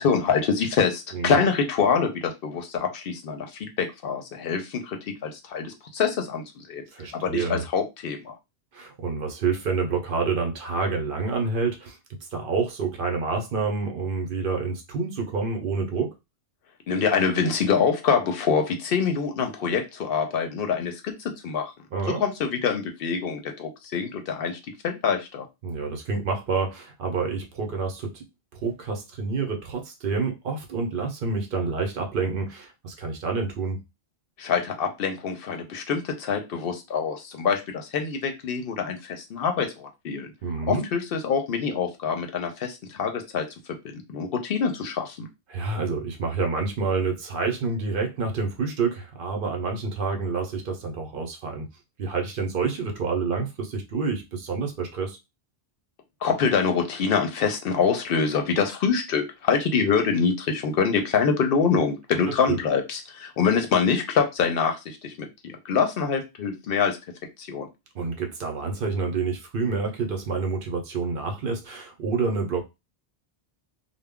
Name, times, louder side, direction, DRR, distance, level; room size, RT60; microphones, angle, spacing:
voice 1, 0.0-6.8 7.1-8.3 16.9-21.7 22.2-24.6 24.8-25.4 34.4-40.3 40.7-43.4 43.8-45.3 56.2-67.0 67.4-67.7, left 6 dB, 70° left, 0.7 m, -25 dB
voice 2, 1.1-1.5 6.9-7.6 8.7-12.0 12.3-16.1 21.9-22.2 25.6-28.2 28.6-33.8 40.4-40.8 45.5-51.7 52.0-55.2 62.3-62.6 67.9-72.6, right 4 dB, 60° right, 0.8 m, -28 dB
2.2 x 2.0 x 3.5 m
omnidirectional pair, 1.0 m